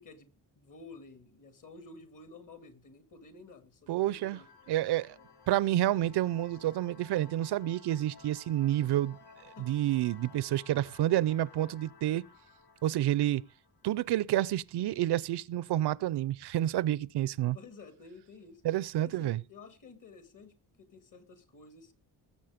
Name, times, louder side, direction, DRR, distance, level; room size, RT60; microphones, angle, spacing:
voice 1, 0.0-4.5 5.2-5.3 9.6-9.7 17.4-18.6 19.0-21.9, left 3 dB, 50° left, 2.5 m, -52 dB
voice 2, 3.9-4.4 4.7-5.2 5.5-9.2 9.6-12.2 12.8-13.4 13.8-17.6 18.6-19.4, right 13 dB, 80° right, 0.6 m, -29 dB
sound 1, 4.1-14.5, left 5 dB, 75° left, 1.6 m, -56 dB
19.0 x 7.4 x 5.1 m
wide cardioid pair, 135°, 40 cm